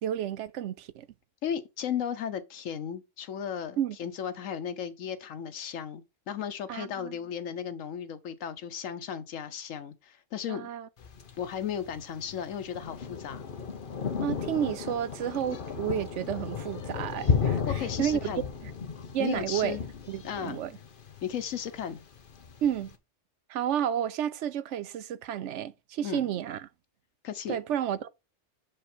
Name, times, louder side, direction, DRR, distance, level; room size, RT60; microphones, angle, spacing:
voice 1, 0.0-1.1 3.8-4.0 6.7-7.1 10.5-10.9 14.2-18.2 19.1-19.8 20.1-20.7 22.6-22.9 23.5-26.7 27.5-28.1, right 10 dB, 70° right, 0.9 m, -31 dB
voice 2, 1.4-10.7 11.4-13.4 17.7-18.4 19.2-19.8 20.2-20.6 21.2-22.0 26.0-26.2 27.2-27.6, left 8 dB, 85° left, 1.3 m, -35 dB
Thunder, 11.0-22.9, left 6 dB, 45° left, 1.0 m, -34 dB
6.7 x 5.2 x 4.3 m
omnidirectional pair, 1.3 m